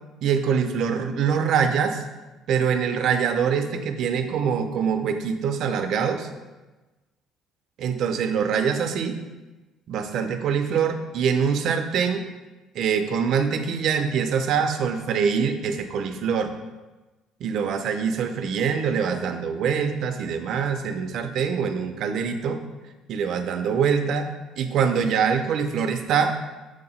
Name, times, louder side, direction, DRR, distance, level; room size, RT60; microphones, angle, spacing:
voice 1, 0.2-2.0 2.5-6.3 7.8-9.2 9.9-12.3 12.7-16.5 17.4-22.6 23.1-24.3 24.6-26.4, right 6 dB, 55° right, 6 dB, 0.6 m, -24 dB
7.6 x 2.9 x 5.4 m, 1.2 s
cardioid pair, 160°, 0 cm